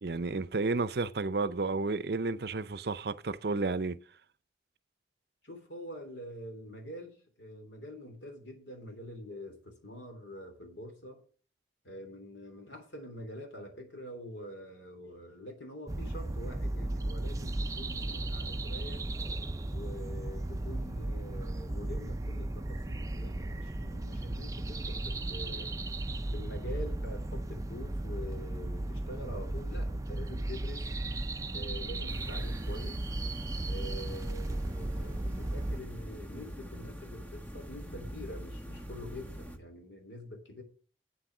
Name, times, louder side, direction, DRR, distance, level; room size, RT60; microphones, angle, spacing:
voice 1, 0.0-4.0, right 3 dB, 60° right, 0.6 m, -31 dB
voice 2, 5.4-11.2 11.8-19.0 19.7-25.7 26.3-30.9 31.5-33.0 33.6-40.6, left 1 dB, 80° left, 3.2 m, -45 dB
sound 1, 15.9-35.8, right 1 dB, 20° right, 0.4 m, -35 dB
sound 2, 32.1-39.6, equal, 10° left, 1.2 m, -44 dB
8.4 x 8.0 x 6.1 m
head